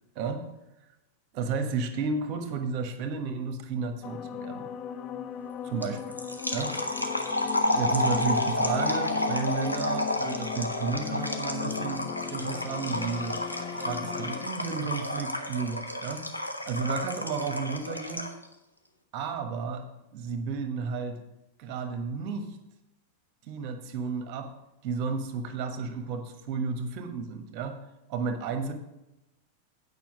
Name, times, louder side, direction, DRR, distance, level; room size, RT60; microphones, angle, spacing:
voice 1, 1.3-4.7 5.6-6.0 6.5-6.8 7.6-13.4 13.8-16.3 16.6-18.3 19.1-19.9 20.1-21.2 21.6-22.6 23.5-24.5 24.8-27.8 28.1-28.7, right 5 dB, 40° right, 7 dB, 1.3 m, -32 dB
sound 1, 4.0-14.5, left 10 dB, 35° left, 0.5 m, -37 dB
sound 2, 5.8-18.4, left 1 dB, 90° left, 0.9 m, -31 dB
9.0 x 5.5 x 6.3 m, 0.94 s
figure-of-eight pair, 90°, 0 cm